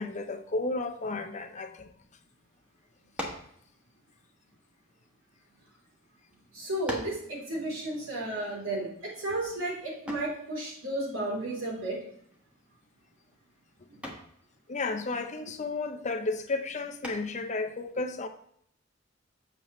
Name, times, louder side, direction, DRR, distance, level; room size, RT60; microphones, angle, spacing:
voice 1, 0.0-1.9 14.7-18.3, left 3 dB, 35° left, 0.7 m, -33 dB
sound 1, 3.1-3.6 4.5-5.7 6.3-6.4 6.9-7.3 10.1-10.4 12.3-12.7 13.1-13.4 14.0-14.4 17.0-17.5, left 1 dB, 5° right, 1.3 m, -39 dB
voice 2, 6.5-12.0, right 1 dB, 85° right, 3.4 m, -33 dB
7.3 x 6.9 x 3.1 m
head